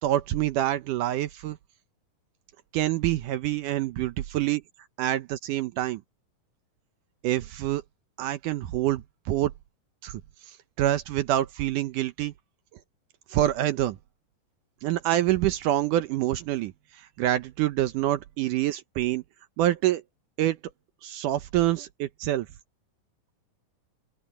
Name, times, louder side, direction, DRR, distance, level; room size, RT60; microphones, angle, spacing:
voice 1, 0.0-1.6 2.7-4.6 5.0-6.0 7.2-7.8 8.2-9.5 10.0-10.2 10.5-12.3 13.3-14.0 14.8-19.2 19.6-20.0 20.4-20.6 21.0-22.5, right 13 dB, 75° right, 2.2 m, -26 dB
open air
omnidirectional pair, 4.0 m